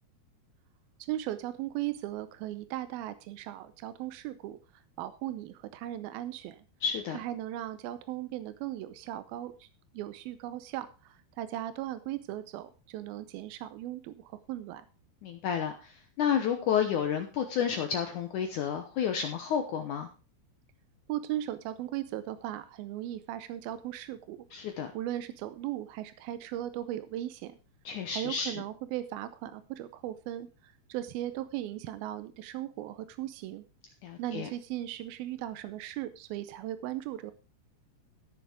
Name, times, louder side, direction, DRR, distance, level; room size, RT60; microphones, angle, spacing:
voice 1, 1.1-4.6 5.0-6.6 7.1-9.7 9.9-14.9 21.1-24.5 24.9-27.5 28.1-33.6 34.2-37.3, right 13 dB, 85° right, 12 dB, 2.2 m, -37 dB
voice 2, 6.8-7.2 15.2-20.1 24.5-24.9 27.8-28.5 34.0-34.5, left 8 dB, 90° left, 5 dB, 1.7 m, -31 dB
14.5 x 6.6 x 4.9 m, 0.33 s
omnidirectional pair, 5.2 m